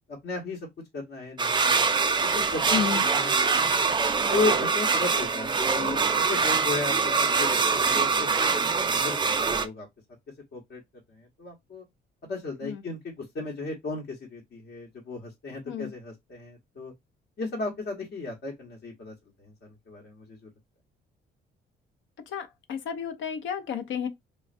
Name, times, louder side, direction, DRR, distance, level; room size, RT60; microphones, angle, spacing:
voice 1, 0.1-0.7 0.9-1.9 2.2-3.8 4.3-8.5 8.9-9.9 10.5-10.8 11.1-11.8 12.2-16.9 17.4-20.5, left 3 dB, 60° left, 1.0 m, -35 dB
sound 1, 1.4-9.7, right 5 dB, 25° right, 0.4 m, -24 dB
voice 2, 2.7-3.1 12.6-12.8 15.7-15.9 22.3-24.1, left 8 dB, 75° left, 0.6 m, -31 dB
3.1 x 2.3 x 2.5 m
cardioid pair, 90°, 20 cm